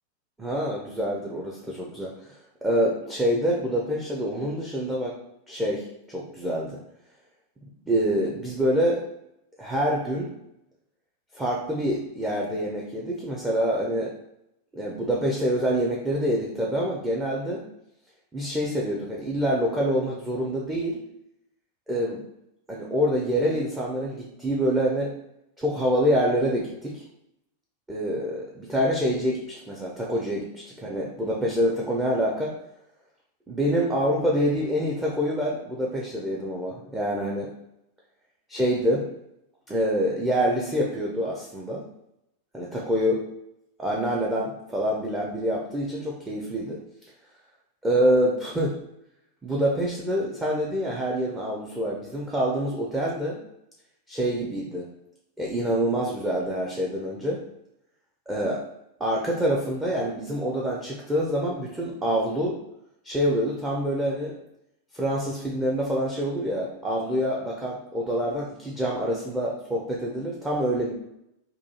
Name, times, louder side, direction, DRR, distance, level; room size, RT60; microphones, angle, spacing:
voice 1, 0.4-2.1 2.6-5.1 5.5-6.8 7.9-9.0 9.6-10.3 11.3-14.1 14.7-17.6 18.3-21.0 21.9-22.2 22.7-25.1 25.6-27.0 27.9-32.5 33.5-37.5 38.5-39.0 39.7-41.8 42.5-43.2 43.8-46.8 47.8-48.8 49.4-53.4 54.1-54.9 55.4-57.4 58.3-58.6 59.0-62.6 63.0-64.3 64.9-70.9, equal, 10° right, -3 dB, 0.5 m, -26 dB
3.7 x 2.4 x 2.7 m, 0.83 s
figure-of-eight pair, 90°, 0 cm